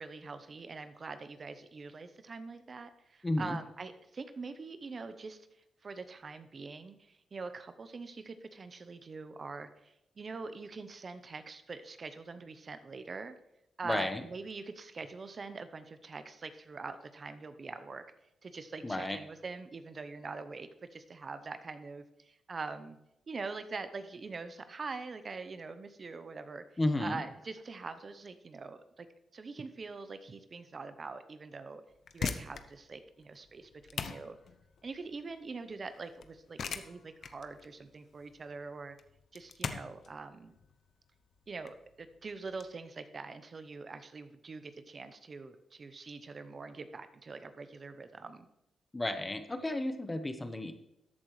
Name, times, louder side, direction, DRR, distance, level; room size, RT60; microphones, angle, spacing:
voice 1, 0.0-5.4 5.8-13.3 13.8-18.0 18.4-23.0 23.3-26.6 27.0-29.1 29.3-31.8 32.1-34.4 34.8-39.0 39.3-40.5 41.5-48.5, right 4 dB, 45° right, 10 dB, 0.8 m, -44 dB
voice 2, 3.2-3.6 13.8-14.2 18.8-19.2 26.8-27.2 48.9-50.7, left 1 dB, 20° left, 8 dB, 1.0 m, -32 dB
sound 1, 31.9-42.7, left 6 dB, 65° left, 0.7 m, -42 dB
13.5 x 8.4 x 3.2 m, 0.83 s
cardioid pair, 80°, 0 cm